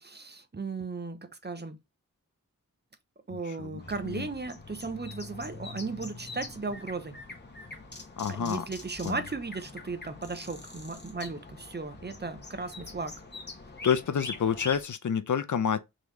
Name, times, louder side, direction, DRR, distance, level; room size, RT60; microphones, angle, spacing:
voice 1, 0.0-1.8 3.3-7.2 8.3-13.1, right 3 dB, 30° right, 0.7 m, -36 dB
voice 2, 3.3-4.3 8.2-8.7 9.0-9.2 13.8-15.8, left 7 dB, 60° left, 0.5 m, -29 dB
sound 1, 3.8-14.8, left 3 dB, 30° left, 1.1 m, -44 dB
3.7 x 3.0 x 3.2 m
wide cardioid pair, 60°, 34 cm